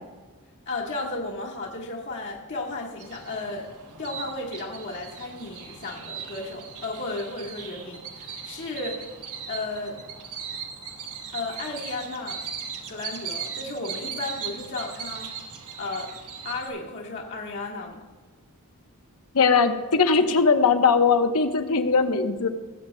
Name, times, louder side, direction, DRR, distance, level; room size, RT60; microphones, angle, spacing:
voice 1, 0.7-3.7 4.0-9.1 9.5-10.0 11.3-12.4 12.9-15.3 15.8-16.1 16.4-18.0, left 2 dB, 55° left, -3 dB, 1.6 m, -34 dB
sound 1, 3.0-16.7, right 6 dB, 85° right, 1.5 m, -38 dB
voice 2, 19.3-22.5, left 5 dB, 80° left, 7 dB, 0.9 m, -20 dB
20.0 x 8.2 x 2.2 m, 1.3 s
head